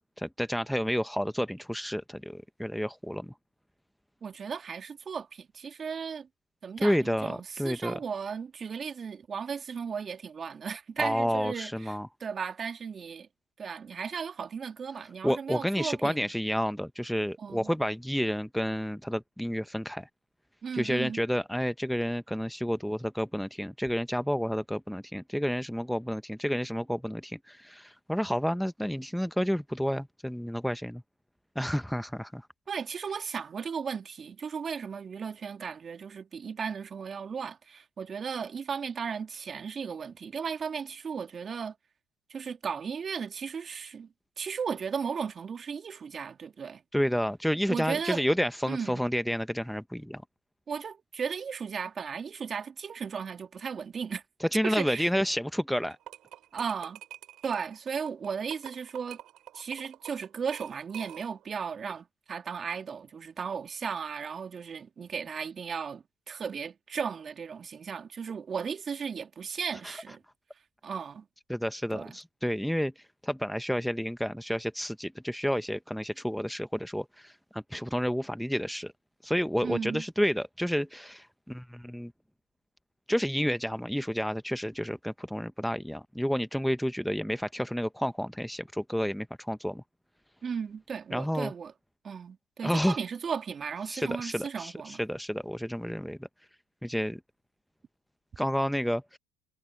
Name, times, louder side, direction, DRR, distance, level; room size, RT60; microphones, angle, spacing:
voice 1, 0.2-3.3 6.8-7.9 11.0-12.1 15.2-20.1 20.7-31.0 31.6-32.5 46.9-50.2 54.5-56.0 69.8-69.9 71.5-78.9 79.2-82.1 83.1-89.8 91.1-91.5 92.6-93.0 93.9-96.2 96.8-97.2 98.4-99.2, equal, ahead, 0.8 m, -30 dB
voice 2, 4.2-6.3 6.6-13.3 13.6-16.3 17.4-17.7 20.6-21.2 32.7-41.8 42.3-46.8 47.7-48.2 48.7-49.0 50.7-54.2 54.6-55.1 56.5-57.0 57.4-59.2 59.5-70.2 70.8-71.3 71.9-72.2 79.6-80.0 90.4-91.7 92.0-95.0, right 6 dB, 35° right, 2.6 m, -36 dB
sound 1, 55.9-61.5, right 13 dB, 55° right, 3.7 m, -47 dB
supercardioid pair, 90°, 0 cm